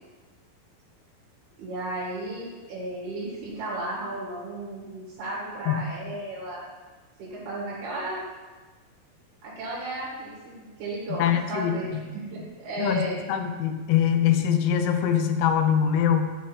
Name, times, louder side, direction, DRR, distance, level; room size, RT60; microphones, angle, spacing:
voice 1, 1.6-6.7 7.2-8.2 9.4-13.2, right 2 dB, 90° right, -6 dB, 4.1 m, -34 dB
voice 2, 11.2-12.0 12.8-13.0 13.3-16.4, left 9 dB, 85° left, 7 dB, 2.7 m, -23 dB
8.5 x 8.1 x 5.1 m, 1.3 s
omnidirectional pair, 4.3 m